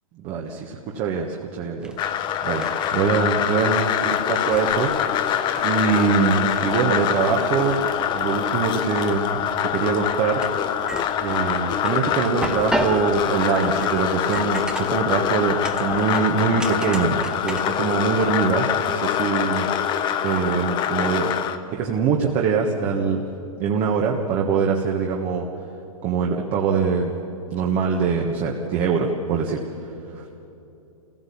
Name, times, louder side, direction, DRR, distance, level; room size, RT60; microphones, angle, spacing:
voice 1, 0.2-2.0 2.4-2.7 2.9-4.9 5.6-7.8 8.1-9.4 9.7-10.6 11.2-19.7 20.2-21.3 21.7-23.2 23.6-25.5 26.0-27.1 27.5-30.4, right 5 dB, 35° right, 0 dB, 1.7 m, -23 dB
sound 1, 1.8-18.9, right 1 dB, 5° right, 1.1 m, -36 dB
sound 2, 2.0-21.6, left 10 dB, 25° left, 1.0 m, -24 dB
26.5 x 16.5 x 8.7 m, 2.9 s
hypercardioid pair, 135°, 18 cm